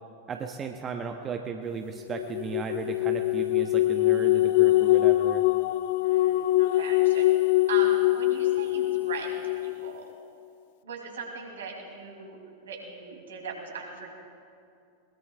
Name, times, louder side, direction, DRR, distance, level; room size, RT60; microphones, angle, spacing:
voice 1, 0.3-5.4, right 6 dB, 25° right, 5 dB, 0.8 m, -35 dB
sound 1, 2.1-9.9, left 17 dB, 50° left, 0.3 m, -23 dB
voice 2, 6.0-7.3 7.7-10.1 10.8-12.4 12.6-14.1, right 5 dB, 65° right, 0 dB, 3.1 m, -39 dB
21.5 x 20.5 x 2.4 m, 2.5 s
figure-of-eight pair, 90°, 0 cm